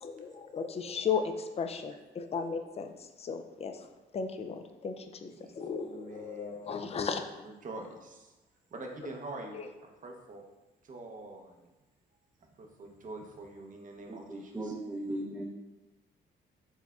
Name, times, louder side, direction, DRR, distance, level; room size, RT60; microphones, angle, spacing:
voice 1, 0.0-3.9 4.1-7.4 9.5-9.7, left 6 dB, 30° left, 7 dB, 0.4 m, -36 dB
voice 2, 5.3-7.2 7.4-8.3 8.7-9.6 10.0-10.5 10.8-11.7 12.6-14.7, right 2 dB, 40° right, 2 dB, 0.7 m, -45 dB
voice 3, 14.1-15.4, right 1 dB, 10° right, -5 dB, 0.7 m, -37 dB
4.3 x 4.0 x 2.3 m, 1.1 s
cardioid pair, 90°, 20 cm